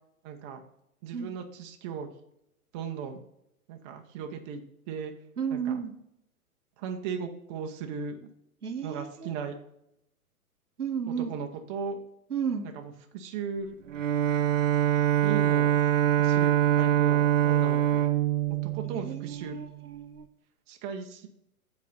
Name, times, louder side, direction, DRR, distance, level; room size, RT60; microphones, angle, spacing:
voice 1, 0.2-0.6 1.0-2.1 2.7-3.2 3.7-5.1 5.5-5.8 6.8-8.2 8.8-9.6 11.1-12.0 12.6-13.8 15.2-15.8 16.2-18.0 18.6-19.6 20.7-21.3, right 6 dB, 20° right, 4 dB, 0.6 m, -37 dB
voice 2, 5.4-5.9 8.6-9.3 10.8-11.3 12.3-12.7 18.9-20.3, right 7 dB, 85° right, 7 dB, 1.0 m, -33 dB
Bowed string instrument, 13.9-19.6, right 11 dB, 60° right, 0.8 m, -24 dB
7.3 x 4.1 x 5.4 m, 0.78 s
figure-of-eight pair, 115°, 44 cm